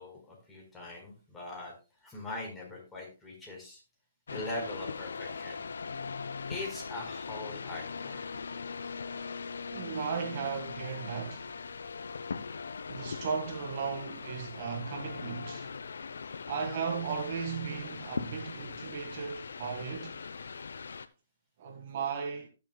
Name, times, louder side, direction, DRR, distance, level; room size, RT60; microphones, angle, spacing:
voice 1, 0.0-1.7 2.0-3.8 4.3-5.6 6.5-8.3, left 2 dB, 10° left, 4.3 m, -41 dB
sound 1, 4.3-21.1, left 5 dB, 70° left, 0.7 m, -40 dB
voice 2, 9.7-11.5 12.9-15.7 16.5-20.1 21.6-22.5, right 6 dB, 45° right, 1.7 m, -36 dB
18.0 x 6.8 x 2.3 m
figure-of-eight pair, 135°, 0 cm